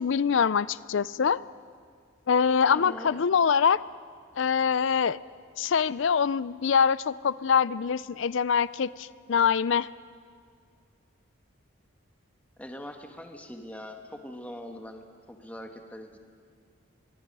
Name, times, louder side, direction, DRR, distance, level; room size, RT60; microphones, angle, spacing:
voice 1, 0.0-1.4 2.3-3.8 4.4-5.2 5.6-9.9, left 6 dB, 65° left, 19 dB, 0.4 m, -24 dB
voice 2, 2.7-3.2 12.6-16.2, left 1 dB, 5° left, 4 dB, 1.4 m, -42 dB
23.5 x 23.0 x 5.5 m, 2.1 s
head